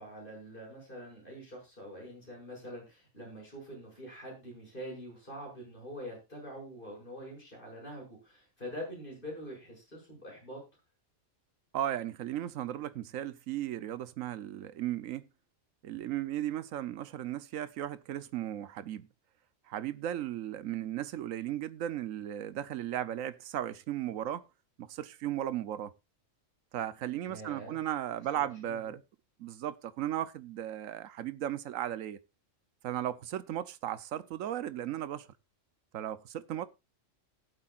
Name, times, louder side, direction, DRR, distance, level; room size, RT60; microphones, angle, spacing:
voice 1, 0.0-10.6 27.3-27.7 28.3-29.0, equal, 40° left, 7.5 m, -45 dB
voice 2, 11.7-15.3 15.8-19.1 19.7-24.4 24.8-25.9 26.7-29.0 29.4-32.2 32.8-35.3 35.9-36.7, right 11 dB, 85° right, 1.2 m, -36 dB
18.5 x 8.0 x 2.4 m
omnidirectional pair, 1.3 m